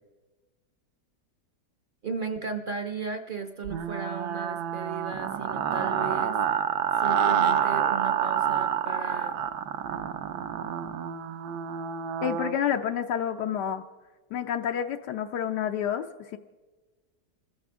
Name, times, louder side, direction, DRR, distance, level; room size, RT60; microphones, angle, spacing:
voice 1, 2.0-6.4 7.0-9.4, right 4 dB, 45° right, 6 dB, 0.7 m, -35 dB
sound 1, 3.7-12.6, right 8 dB, 70° right, 1.2 m, -28 dB
voice 2, 12.2-13.8 14.3-16.4, left 9 dB, 80° left, 4 dB, 1.3 m, -29 dB
26.5 x 14.5 x 3.6 m, 1.3 s
omnidirectional pair, 1.8 m